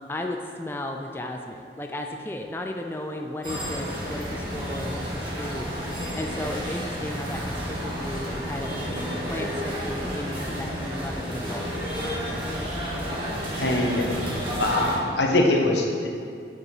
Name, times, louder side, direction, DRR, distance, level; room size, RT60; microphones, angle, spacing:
voice 1, 0.1-8.7 9.3-11.7, left 1 dB, 15° left, 3 dB, 0.4 m, -35 dB
sound 1, 3.4-15.0, equal, 30° right, 1.8 m, -31 dB
voice 2, 13.6-14.0 14.6-16.1, left 2 dB, 85° left, 0 dB, 1.2 m, -22 dB
9.4 x 5.3 x 4.8 m, 2.3 s
head